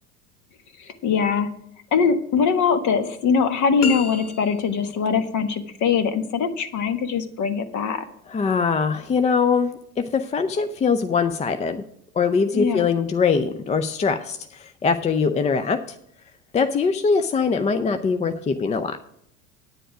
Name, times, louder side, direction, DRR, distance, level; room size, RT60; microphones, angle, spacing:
voice 1, 0.8-1.5 1.9-8.1 12.5-12.9, left 6 dB, 40° left, 10 dB, 1.5 m, -22 dB
sound 1, 3.8-4.9, left 6 dB, 80° left, 1.0 m, -31 dB
voice 2, 8.3-11.8 12.1-15.8 16.5-19.0, left 5 dB, 15° left, 9 dB, 0.5 m, -22 dB
10.0 x 9.4 x 4.9 m, 0.72 s
figure-of-eight pair, 75°, 45 cm